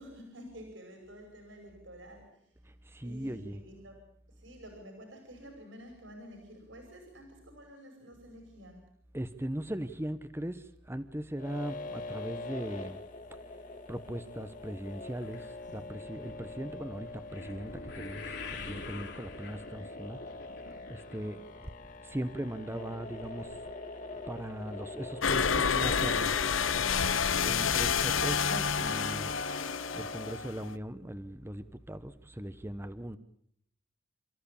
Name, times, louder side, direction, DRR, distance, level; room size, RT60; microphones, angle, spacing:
voice 1, 0.0-2.5 3.0-4.0 4.3-8.8, equal, 70° right, 4 dB, 5.8 m, -50 dB
voice 2, 2.7-3.6 9.1-13.0 13.9-20.2 20.6-21.7 22.0-23.6 24.3-26.4 27.4-29.3 29.9-33.2, right 1 dB, 15° right, 11 dB, 0.9 m, -39 dB
sound 1, 11.4-30.3, left 3 dB, 40° left, 2.6 m, -44 dB
sound 2, 15.2-21.6 21.9-22.4 22.9-23.0 23.3-23.4, left 3 dB, 60° left, 4.3 m, -46 dB
sound 3, 25.2-30.7, left 6 dB, 85° left, 0.9 m, -29 dB
29.0 x 14.5 x 8.5 m, 0.67 s
head